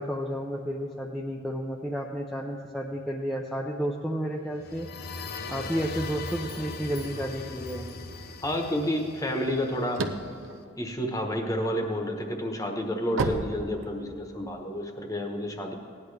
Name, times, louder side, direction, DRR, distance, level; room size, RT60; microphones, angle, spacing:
voice 1, 0.0-4.9 5.5-7.9, equal, ahead, -2 dB, 0.5 m, -31 dB
sound 1, 4.5-10.3, left 3 dB, 50° left, 0.7 m, -39 dB
voice 2, 8.4-10.1 10.8-15.7, equal, 15° left, 3 dB, 1.1 m, -30 dB
sound 2, 9.8-11.6 12.1-14.4, right 3 dB, 80° right, 0.8 m, -32 dB
17.0 x 10.5 x 3.3 m, 2.5 s
head